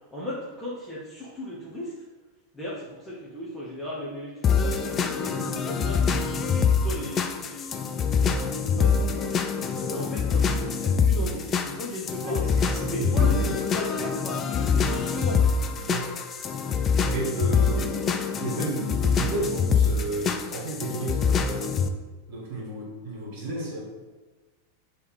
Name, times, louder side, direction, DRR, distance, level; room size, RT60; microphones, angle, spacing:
voice 1, 0.1-1.9 2.5-9.3 9.9-12.5 12.9-15.5, equal, 10° left, -7 dB, 1.0 m, -37 dB
sound 1, 4.4-21.9, left 6 dB, 25° left, 0.3 m, -25 dB
voice 2, 12.2-13.6 15.9-16.1 17.1-21.8 22.3-23.8, right 3 dB, 50° right, -2 dB, 1.4 m, -32 dB
3.4 x 3.3 x 4.6 m, 1.3 s
figure-of-eight pair, 90°, 0 cm